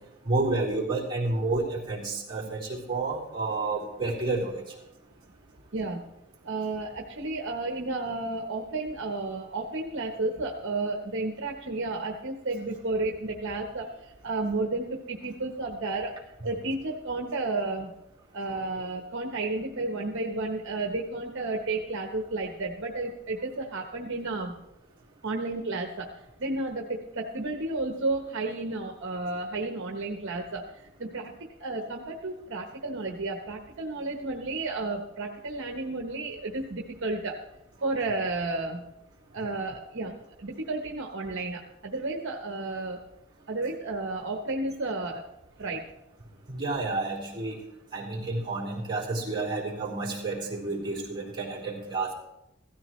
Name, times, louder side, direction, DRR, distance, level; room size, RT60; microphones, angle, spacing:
voice 1, 0.2-4.6 46.5-47.5 47.9-52.1, right 3 dB, 20° right, -7 dB, 3.6 m, -30 dB
voice 2, 6.4-16.2 16.4-17.9 18.3-24.6 25.2-26.1 26.4-30.6 31.0-31.3 31.6-37.4 37.8-38.8 39.3-43.0 43.5-45.2 45.6-45.8, right 2 dB, 60° right, 2 dB, 1.0 m, -32 dB
16.0 x 13.5 x 3.2 m, 0.90 s
head